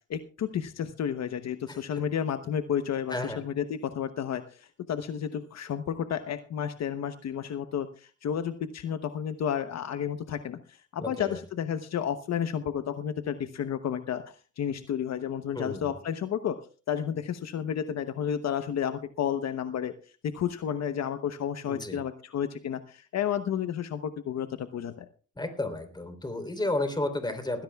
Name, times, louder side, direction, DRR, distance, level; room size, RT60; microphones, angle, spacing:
voice 1, 0.1-16.6 16.9-25.1, left 8 dB, 60° left, 9 dB, 0.9 m, -32 dB
voice 2, 11.0-11.4 15.5-15.9 21.7-22.0 25.4-27.6, left 2 dB, 15° left, 6 dB, 3.5 m, -32 dB
20.0 x 16.5 x 2.3 m, 0.39 s
cardioid pair, 90°, 30 cm